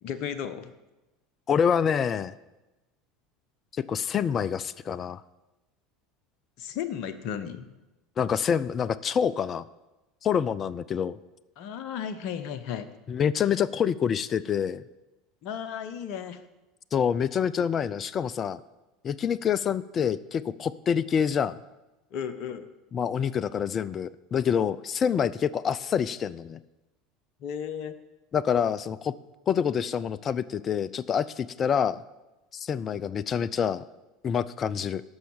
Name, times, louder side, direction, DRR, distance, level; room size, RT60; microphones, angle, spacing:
voice 1, 0.0-0.7 6.6-7.7 11.6-12.9 15.4-16.4 22.1-22.7 27.4-28.0, left 8 dB, 55° left, 10 dB, 0.9 m, -34 dB
voice 2, 1.5-2.3 3.7-5.2 8.2-9.6 10.2-11.2 13.1-14.8 16.9-18.6 19.0-21.5 22.9-26.6 28.3-29.1 29.5-32.0 32.5-33.8 34.2-35.0, left 7 dB, 35° left, 18 dB, 0.4 m, -26 dB
12.5 x 5.6 x 7.2 m, 1.0 s
hypercardioid pair, 75°, 0 cm